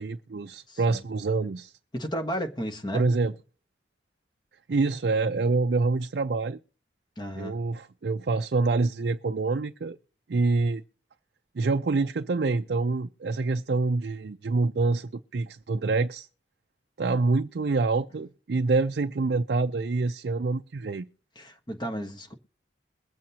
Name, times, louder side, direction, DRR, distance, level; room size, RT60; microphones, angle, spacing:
voice 1, 0.0-1.7 2.9-3.3 4.7-6.6 7.4-10.0 10.3-10.8 11.5-16.3 17.0-21.1, right 3 dB, 60° right, 0.4 m, -26 dB
voice 2, 0.7-1.0 1.9-3.1 7.2-7.6 21.4-22.3, equal, 25° left, 1.3 m, -33 dB
22.0 x 7.5 x 2.8 m
head